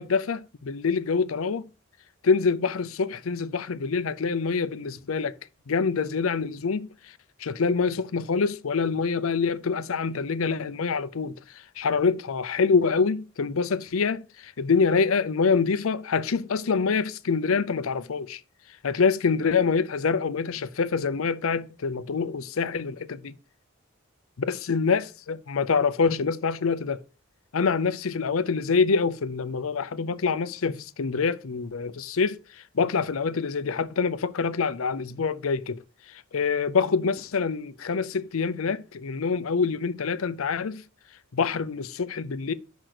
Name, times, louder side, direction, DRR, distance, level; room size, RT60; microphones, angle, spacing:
voice 1, 0.0-1.6 2.2-5.3 5.7-6.9 7.4-11.4 11.8-18.4 18.8-23.3 24.5-27.0 27.5-35.8 36.1-40.8 41.3-42.5, left 5 dB, 75° left, 0.6 m, -26 dB
6.1 x 5.1 x 6.5 m
head